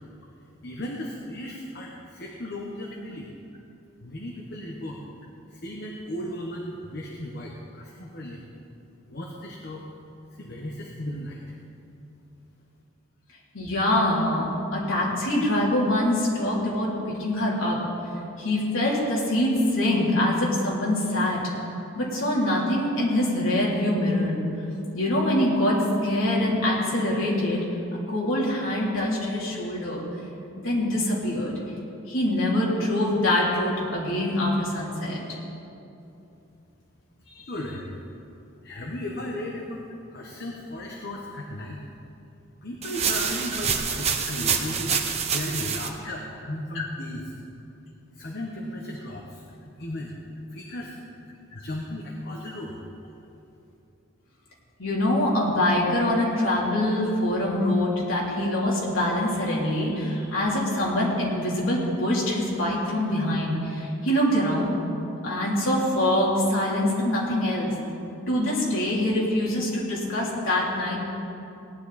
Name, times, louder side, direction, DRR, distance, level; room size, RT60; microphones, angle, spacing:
voice 1, 0.6-3.3 4.0-5.0 5.5-8.4 9.1-9.8 10.3-11.4 37.5-37.9 38.6-41.8 42.6-45.0 45.3-47.4 48.1-50.1 50.5-51.0 51.5-52.8, left 1 dB, 50° left, -1 dB, 1.1 m, -35 dB
voice 2, 13.5-17.8 18.4-21.4 22.0-24.4 24.9-27.6 28.1-30.0 30.6-31.5 32.1-35.2 37.4-37.5 54.8-64.7 65.2-67.7 68.3-71.0, left 1 dB, 75° left, -5 dB, 3.3 m, -24 dB
sound 1, 42.8-45.9, right 6 dB, 30° right, 0.8 m, -27 dB
17.5 x 10.5 x 4.2 m, 2.8 s
head